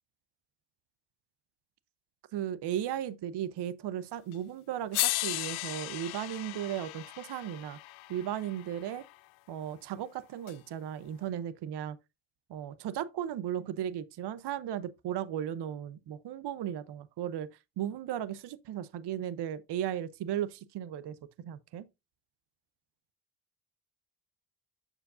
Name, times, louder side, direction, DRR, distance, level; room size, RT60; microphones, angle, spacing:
voice 1, 2.3-7.8 8.1-9.0 9.5-12.0 12.5-17.5 17.8-21.2 21.4-21.8, right 10 dB, 60° right, 0.8 m, -36 dB
sound 1, 4.3-4.4 4.9-9.1 10.5-10.6, left 19 dB, 80° left, 0.6 m, -36 dB
7.3 x 6.6 x 2.5 m
supercardioid pair, 65°, 47 cm